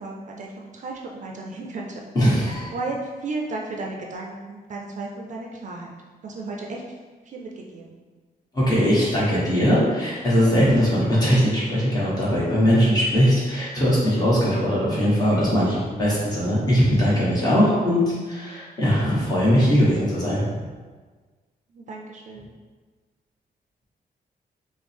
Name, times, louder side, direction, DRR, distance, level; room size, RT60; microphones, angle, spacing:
voice 1, 0.0-2.0 2.3-6.0 6.2-7.0 7.2-8.0 12.8-13.0 21.7-22.5, right 3 dB, 50° right, 0 dB, 0.4 m, -34 dB
voice 2, 2.1-2.7 8.5-20.4, equal, 25° left, -7 dB, 1.2 m, -20 dB
5.0 x 2.0 x 3.4 m, 1.4 s
wide cardioid pair, 165°, 16 cm